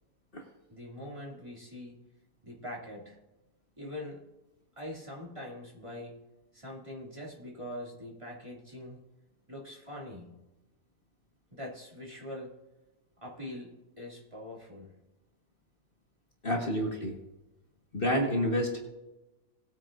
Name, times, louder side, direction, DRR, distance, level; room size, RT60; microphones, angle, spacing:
voice 1, 0.7-2.0 2.4-3.2 3.8-4.2 4.8-6.1 6.5-9.0 9.5-10.3 11.5-12.5 13.2-14.9, left 1 dB, 20° right, -4 dB, 2.7 m, -43 dB
voice 2, 16.4-17.1 17.9-18.8, equal, 40° left, 0 dB, 1.6 m, -29 dB
19.5 x 9.1 x 2.6 m, 0.99 s
omnidirectional pair, 1.5 m